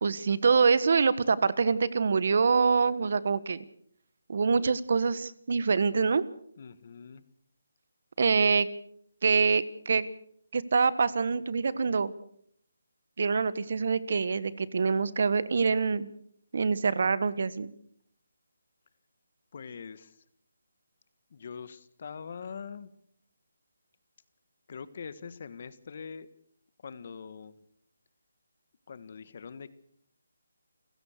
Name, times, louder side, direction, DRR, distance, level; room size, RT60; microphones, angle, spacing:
voice 1, 0.0-3.6 4.3-6.2 8.2-8.7 9.2-10.0 10.5-12.1 13.2-16.1 16.5-17.7, right 5 dB, 50° right, 17 dB, 1.3 m, -25 dB
voice 2, 6.6-7.2 19.5-20.2 21.3-22.9 24.7-26.3 26.8-27.6 28.9-29.7, left 6 dB, 40° left, 15 dB, 1.5 m, -43 dB
29.0 x 16.0 x 6.7 m, 0.67 s
hypercardioid pair, 170°, 0 cm